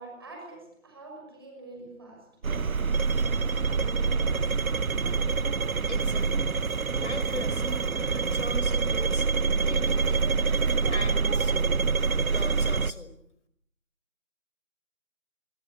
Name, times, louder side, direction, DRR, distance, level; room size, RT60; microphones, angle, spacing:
voice 1, 0.0-2.5, right 2 dB, 20° right, 0 dB, 6.1 m, -45 dB
sound 1, 2.4-12.9, right 5 dB, 90° right, 1.1 m, -26 dB
voice 2, 5.9-6.7 6.9-9.3 9.6-10.3 10.9-11.8 12.3-13.1, left 2 dB, 60° left, 11 dB, 5.3 m, -40 dB
24.5 x 23.5 x 8.4 m, 0.75 s
figure-of-eight pair, 180°, 40 cm